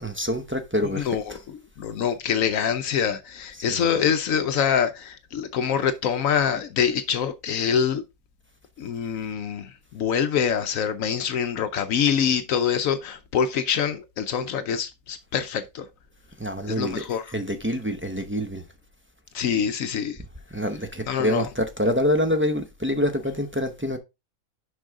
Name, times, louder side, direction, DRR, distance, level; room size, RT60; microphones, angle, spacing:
voice 1, 0.0-1.1 3.7-3.9 16.4-17.0 17.3-18.6 20.5-24.0, equal, 10° right, 0.6 m, -26 dB
voice 2, 0.9-8.0 8.8-15.9 16.7-17.3 19.3-20.2 21.1-21.5, left 7 dB, 75° left, 1.0 m, -25 dB
6.2 x 5.5 x 3.6 m
omnidirectional pair, 1.5 m